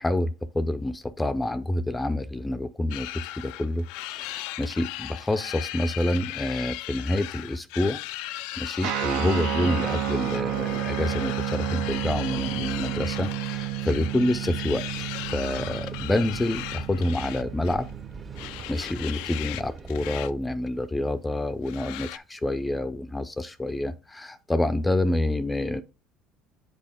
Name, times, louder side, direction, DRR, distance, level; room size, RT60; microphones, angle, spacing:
voice 1, 0.0-3.1 3.4-8.0 8.6-14.8 15.3-17.9 18.7-25.8, left 1 dB, 10° left, 0.5 m, -27 dB
sound 1, 2.9-17.9 18.4-19.6 19.9-20.3 20.6-20.7 21.7-22.2, left 16 dB, 80° left, 0.3 m, -37 dB
Guitar, 8.8-18.6, right 15 dB, 75° right, 0.7 m, -31 dB
sound 2, 11.9-20.2, right 4 dB, 30° right, 0.8 m, -44 dB
7.6 x 4.0 x 3.5 m
supercardioid pair, 105°, 0 cm